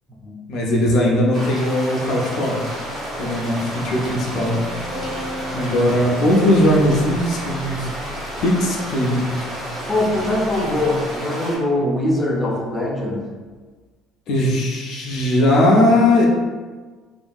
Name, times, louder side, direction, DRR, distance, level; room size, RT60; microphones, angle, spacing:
voice 1, 0.5-2.6 3.2-4.5 5.0-5.1 5.5-7.9 8.4-9.3 14.3-16.3, left 1 dB, 55° left, -2 dB, 0.5 m, -18 dB
sound 1, 1.3-11.6, equal, 40° right, 1.3 m, -31 dB
sound 2, 2.4-11.2, left 1 dB, 85° right, 1.0 m, -39 dB
sound 3, 3.6-9.1 9.4-9.6, equal, 55° right, 0.7 m, -37 dB
voice 2, 9.9-13.3, left 1 dB, 10° left, -5 dB, 0.5 m, -22 dB
2.7 x 2.5 x 2.3 m, 1.4 s
cardioid pair, 140°, 0 cm